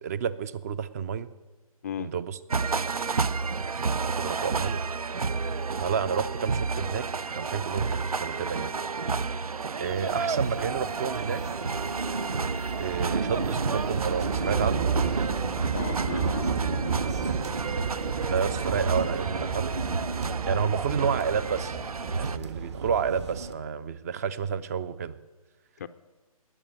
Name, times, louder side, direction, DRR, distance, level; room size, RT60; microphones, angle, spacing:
voice 1, 0.0-1.3 2.0-2.4 3.9-4.8 5.8-8.7 9.8-11.4 12.7-14.9 18.3-19.7 20.5-21.8 22.2-25.2, right 7 dB, 25° right, 18 dB, 0.5 m, -30 dB
sound 1, 2.5-22.4, right 4 dB, 75° right, 0.6 m, -31 dB
sound 2, 9.8-23.5, right 5 dB, 50° right, 1.5 m, -32 dB
voice 2, 15.7-17.1 25.8-25.9, left 9 dB, 25° left, 10 dB, 0.4 m, -37 dB
18.5 x 7.2 x 9.5 m, 1.3 s
figure-of-eight pair, 140°, 19 cm